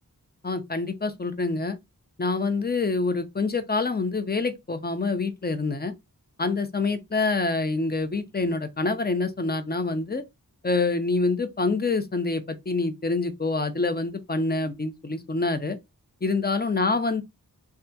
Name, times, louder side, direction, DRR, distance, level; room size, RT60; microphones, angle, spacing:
voice 1, 0.4-1.8 2.2-5.9 6.4-10.2 10.6-15.8 16.2-17.2, left 3 dB, 25° left, 0.5 m, -26 dB
3.3 x 2.3 x 2.7 m
wide cardioid pair, 60°, 37 cm